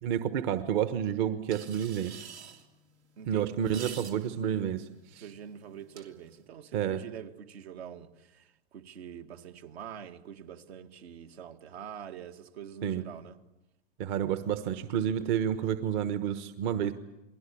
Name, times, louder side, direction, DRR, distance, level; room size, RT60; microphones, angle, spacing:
voice 1, 0.0-2.2 3.3-5.2 6.7-7.0 12.8-13.0 14.0-16.9, right 9 dB, 45° right, 1.3 m, -30 dB
sound 1, 1.5-6.5, right 7 dB, 85° right, 3.1 m, -49 dB
voice 2, 3.2-3.6 5.2-13.4, right 8 dB, 70° right, 2.2 m, -45 dB
29.0 x 21.0 x 8.6 m
hypercardioid pair, 130°, 32 cm